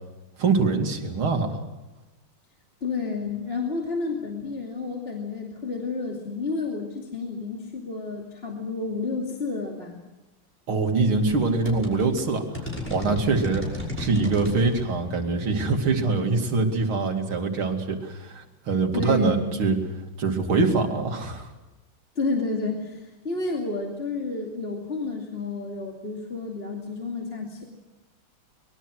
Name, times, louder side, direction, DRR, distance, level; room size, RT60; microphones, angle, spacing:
voice 1, 0.4-1.6 10.7-19.8 20.2-21.5, right 4 dB, 75° right, 4 dB, 3.4 m, -24 dB
voice 2, 2.8-10.0 18.9-19.6 22.1-27.6, left 3 dB, 30° left, 0 dB, 2.8 m, -30 dB
sound 1, 11.1-17.6, left 2 dB, 5° left, 5.7 m, -36 dB
24.5 x 22.0 x 6.4 m, 1.1 s
omnidirectional pair, 2.3 m